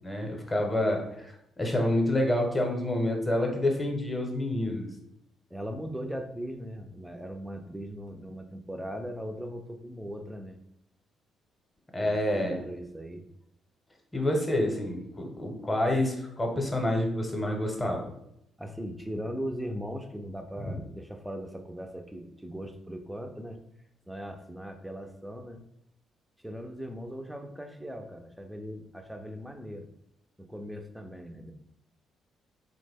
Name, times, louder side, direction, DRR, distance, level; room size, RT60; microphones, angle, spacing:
voice 1, 0.0-1.3 1.6-4.9 11.9-12.6 14.1-18.0 20.6-20.8, left 1 dB, 15° left, 1 dB, 0.8 m, -28 dB
voice 2, 5.5-10.6 12.0-13.3 18.6-23.6 24.1-25.6 26.4-29.9 30.4-31.5, equal, 5° right, 5 dB, 0.4 m, -39 dB
3.4 x 2.1 x 3.4 m, 0.80 s
cardioid pair, 90°, 0 cm